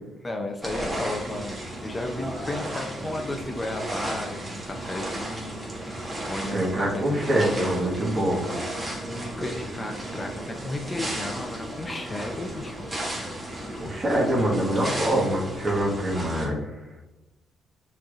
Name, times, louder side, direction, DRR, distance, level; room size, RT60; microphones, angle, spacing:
voice 1, 0.2-7.7 9.0-12.9, left 1 dB, 25° left, 3 dB, 0.5 m, -34 dB
sound 1, 0.6-16.5, right 1 dB, 20° right, 1.3 m, -34 dB
voice 2, 6.5-8.4 13.8-16.6, right 1 dB, 35° right, -3 dB, 1.5 m, -24 dB
6.0 x 3.2 x 2.5 m, 0.97 s
cardioid pair, 90°, 0 cm